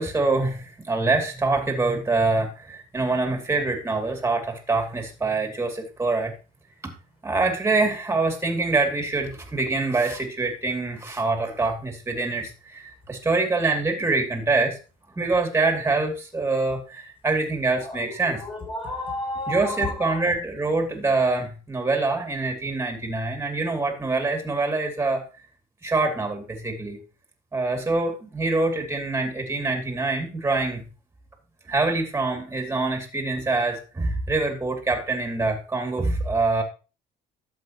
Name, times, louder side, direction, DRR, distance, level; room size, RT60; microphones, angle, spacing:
voice 1, 0.0-6.3 6.8-6.9 7.2-14.8 15.2-18.5 19.5-25.2 25.8-27.0 27.5-30.8 31.7-36.6, right 3 dB, 15° right, 4 dB, 2.6 m, -25 dB
voice 2, 17.8-20.2, left 2 dB, 30° left, -2 dB, 6.1 m, -32 dB
11.5 x 7.6 x 3.0 m, 0.32 s
cardioid pair, 110°, 17 cm